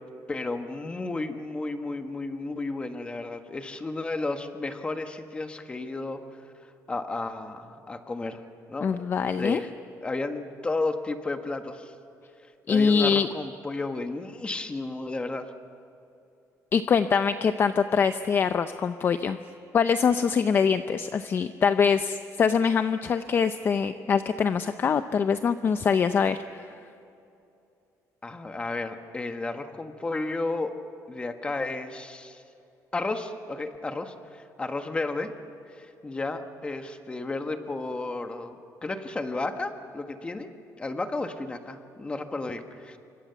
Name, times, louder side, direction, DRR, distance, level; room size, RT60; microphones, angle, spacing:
voice 1, 0.3-6.2 6.9-8.4 8.7-9.0 9.4-9.7 10.0-11.9 12.7-15.5 28.2-30.8 31.1-32.4 32.9-35.3 35.7-40.5 40.8-43.0, left 2 dB, 15° left, 6 dB, 1.5 m, -33 dB
voice 2, 8.8-9.6 12.7-13.3 16.7-19.4 19.7-26.7, left 6 dB, 35° left, 10 dB, 0.6 m, -24 dB
27.0 x 24.5 x 7.1 m, 2.7 s
cardioid pair, 155°, 6 cm